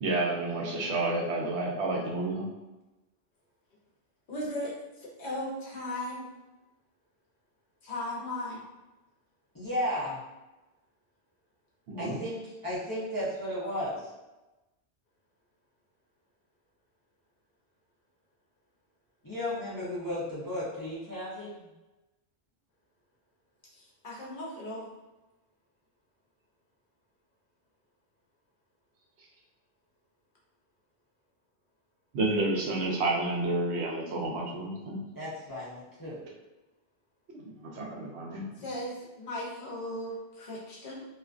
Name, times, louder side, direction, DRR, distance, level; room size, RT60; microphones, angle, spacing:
voice 1, 0.0-2.5 11.9-12.2 32.1-35.0 37.3-38.6, right 2 dB, 85° right, -2 dB, 0.9 m, -30 dB
voice 2, 4.3-6.3 7.8-8.6 24.0-24.8 38.6-41.1, left 1 dB, 55° left, -4 dB, 0.7 m, -37 dB
voice 3, 9.5-10.2 12.0-14.0 19.2-21.7 35.1-36.2, left 1 dB, 25° left, -9 dB, 0.4 m, -34 dB
2.5 x 2.3 x 2.4 m, 1.1 s
omnidirectional pair, 1.1 m